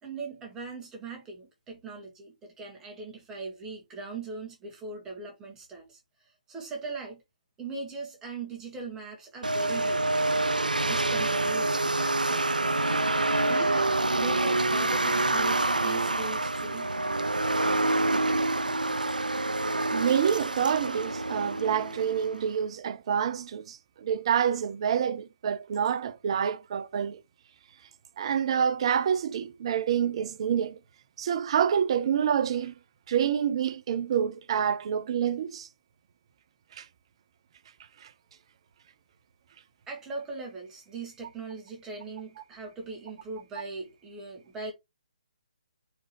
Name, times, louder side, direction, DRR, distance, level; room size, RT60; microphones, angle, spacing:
voice 1, 0.0-7.2 7.6-10.2 10.8-13.1 13.5-16.9 39.9-44.7, right 3 dB, 10° right, 1.9 m, -40 dB
sound 1, 9.4-22.5, right 2 dB, 85° right, 0.4 m, -27 dB
voice 2, 19.9-27.2 28.2-30.8 31.2-32.8 33.1-35.7 36.7-36.9 38.0-38.1, right 8 dB, 40° right, 0.6 m, -27 dB
4.5 x 3.7 x 3.2 m
figure-of-eight pair, 135°, 4 cm